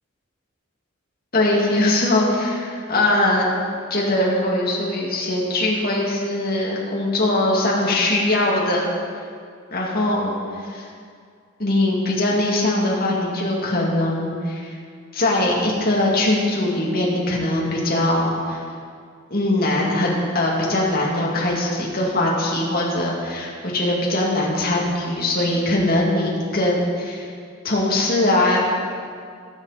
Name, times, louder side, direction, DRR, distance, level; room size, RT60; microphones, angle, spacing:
voice 1, 1.3-3.5 3.9-8.9 9.7-10.9 11.6-14.8 15.1-18.6 19.3-27.3 27.6-28.6, left 1 dB, 45° left, -4 dB, 2.5 m, -21 dB
19.0 x 7.6 x 4.3 m, 2.2 s
head